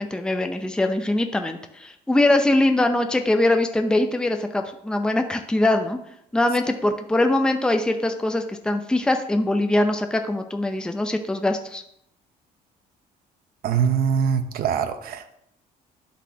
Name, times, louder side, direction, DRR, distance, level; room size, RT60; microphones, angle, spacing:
voice 1, 0.0-6.0 6.3-11.8, left 1 dB, 5° left, 5 dB, 0.6 m, -22 dB
voice 2, 13.6-15.4, right 7 dB, 60° right, 9 dB, 0.8 m, -23 dB
11.5 x 4.1 x 2.9 m, 0.74 s
cardioid pair, 110°, 17 cm